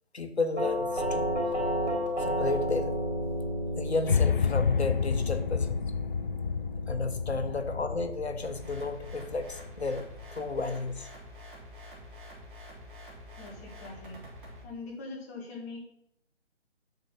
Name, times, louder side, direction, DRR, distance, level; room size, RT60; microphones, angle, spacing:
voice 1, 0.1-1.3 2.2-2.9 3.7-5.9 6.9-11.1, left 3 dB, 70° left, 8 dB, 1.3 m, -32 dB
Doorbell, 0.6-9.4, equal, 80° right, 4.3 m, -33 dB
sound 1, 4.1-10.2, left 6 dB, 50° left, 0.4 m, -30 dB
sound 2, 8.4-14.6, left 1 dB, 50° right, 3.5 m, -47 dB
voice 2, 13.4-14.2 14.6-15.8, left 3 dB, 15° left, -2 dB, 1.7 m, -42 dB
8.3 x 5.9 x 5.7 m, 0.74 s
figure-of-eight pair, 145°, 34 cm